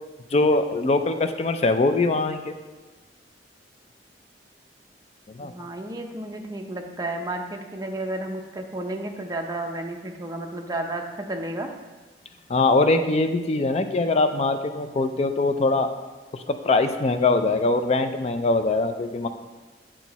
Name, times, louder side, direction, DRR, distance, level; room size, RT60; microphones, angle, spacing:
voice 1, 0.3-2.5 5.3-5.5 12.5-15.9 16.3-19.3, left 3 dB, 35° left, 8 dB, 0.4 m, -22 dB
voice 2, 5.4-11.7, right 1 dB, 20° right, 3 dB, 0.6 m, -32 dB
7.6 x 4.5 x 4.1 m, 1.3 s
head